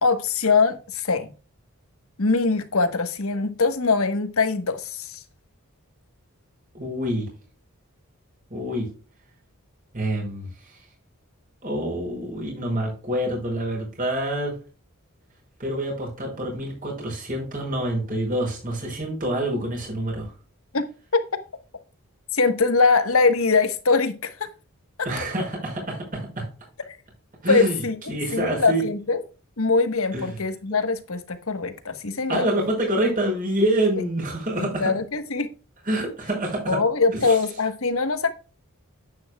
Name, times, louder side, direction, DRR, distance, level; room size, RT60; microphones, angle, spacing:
voice 1, 0.0-1.3 2.2-5.2 20.7-20.9 22.3-24.5 25.0-25.1 27.5-29.2 29.6-32.5 34.6-35.5 36.7-38.3, left 4 dB, 70° left, 1.3 m, -22 dB
voice 2, 6.7-7.3 8.5-8.9 9.9-10.5 11.6-14.6 15.6-20.3 25.0-26.5 27.4-27.8 28.1-28.8 30.1-30.4 32.3-35.0 35.9-36.8 37.1-37.3, right 1 dB, 35° right, 5.7 m, -26 dB
10.5 x 8.8 x 2.3 m
head